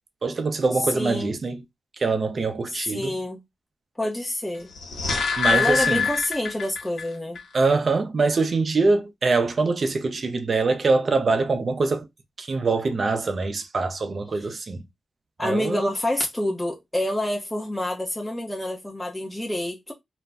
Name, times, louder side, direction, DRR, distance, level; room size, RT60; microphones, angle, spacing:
voice 1, 0.2-1.6 2.0-3.2 5.4-6.0 7.5-12.1 12.4-14.9 15.4-15.9, right 3 dB, 50° right, 0.5 m, -24 dB
voice 2, 0.9-1.4 2.7-3.4 4.0-4.7 5.5-7.4 14.3-14.5 15.4-19.9, left 1 dB, 10° left, 0.6 m, -28 dB
sound 1, 4.6-7.1 7.4-7.5, left 5 dB, 80° left, 1.0 m, -24 dB
2.4 x 2.1 x 3.3 m
cardioid pair, 75°, 0 cm